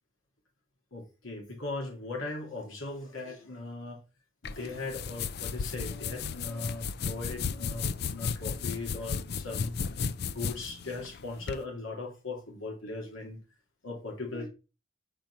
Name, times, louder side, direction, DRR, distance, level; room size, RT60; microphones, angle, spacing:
voice 1, 0.9-4.0 4.4-9.8 10.3-13.4 13.8-14.5, left 3 dB, 90° left, 2.5 m, -39 dB
sound 1, 4.4-11.6, left 6 dB, 50° left, 0.4 m, -34 dB
5.2 x 4.4 x 5.9 m
head